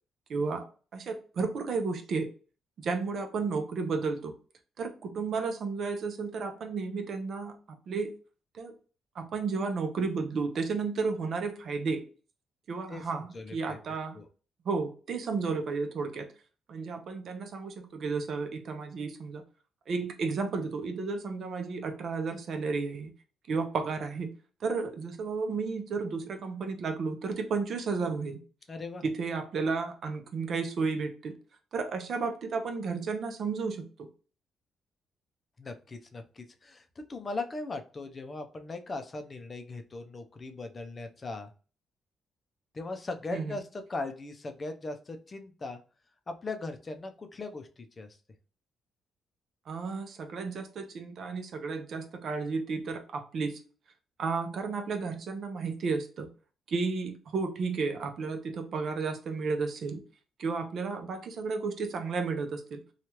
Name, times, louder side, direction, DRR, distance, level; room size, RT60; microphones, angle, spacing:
voice 1, 0.3-0.7 0.9-2.3 2.8-4.3 4.8-8.1 8.5-8.7 9.1-12.1 12.7-14.2 14.6-16.3 16.7-19.4 19.9-23.1 23.5-24.3 24.6-28.4 29.0-31.3 31.7-34.1 43.3-43.6 49.7-53.6 54.2-56.3 56.7-60.0 60.4-62.8, right 4 dB, 60° right, 6 dB, 0.6 m, -32 dB
voice 2, 12.9-13.8 14.1-14.3 28.7-29.0 35.6-36.8 37.1-41.5 42.7-45.8 46.3-48.1, left 3 dB, 35° left, 6 dB, 0.5 m, -39 dB
3.0 x 2.3 x 2.9 m, 0.37 s
cardioid pair, 90°, 0 cm